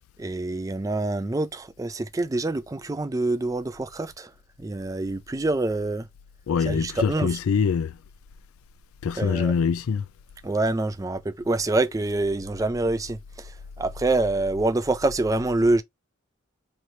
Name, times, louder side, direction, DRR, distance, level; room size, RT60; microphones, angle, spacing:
voice 1, 0.2-4.3 4.6-6.1 6.7-7.3 9.2-9.5 10.4-15.8, right 2 dB, 15° right, 0.3 m, -26 dB
voice 2, 6.5-8.0 9.0-10.1, left 6 dB, 80° left, 0.3 m, -24 dB
3.1 x 2.7 x 4.4 m
head